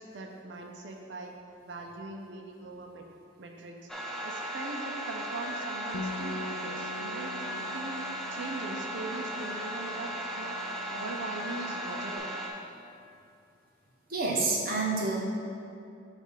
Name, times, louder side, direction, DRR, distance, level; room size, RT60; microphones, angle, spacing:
voice 1, 0.0-1.3 1.7-3.1 3.4-3.9 4.2-8.0 8.3-10.6 10.9-12.7, right 2 dB, 70° right, 1 dB, 0.5 m, -41 dB
sound 1, 3.9-12.5, right 1 dB, 5° left, 0.4 m, -36 dB
Bass guitar, 5.9-12.2, left 3 dB, 85° left, 0.5 m, -44 dB
voice 2, 14.1-15.2, right 3 dB, 50° right, -2 dB, 1.0 m, -28 dB
7.1 x 2.5 x 5.6 m, 2.5 s
head